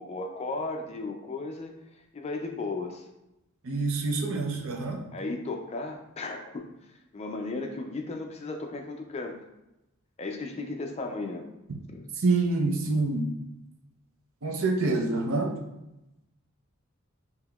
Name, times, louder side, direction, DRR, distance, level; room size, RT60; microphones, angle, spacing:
voice 1, 0.0-1.7 2.1-3.1 5.1-9.4 10.2-11.5 11.9-12.1, left 3 dB, 30° left, 4 dB, 0.4 m, -35 dB
voice 2, 3.6-5.0 12.2-13.3 14.4-15.6, right 3 dB, 65° right, 2 dB, 0.6 m, -26 dB
5.2 x 2.8 x 2.3 m, 0.92 s
head